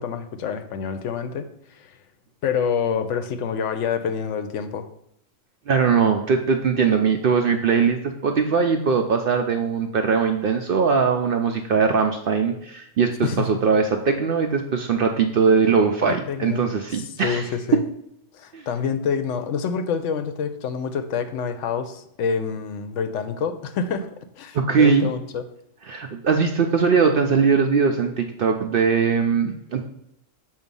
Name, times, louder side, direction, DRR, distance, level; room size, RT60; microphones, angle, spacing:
voice 1, 0.0-1.5 1.7-1.9 2.4-4.9 13.2-13.4 16.1-16.6 16.9-17.8 18.3-24.1 24.4-25.4, left 6 dB, 75° left, 9 dB, 0.9 m, -27 dB
voice 2, 5.7-17.5 18.5-18.7 24.5-25.1 25.9-29.8, right 5 dB, 65° right, 4 dB, 0.6 m, -20 dB
7.0 x 2.7 x 5.2 m, 0.78 s
omnidirectional pair, 1.3 m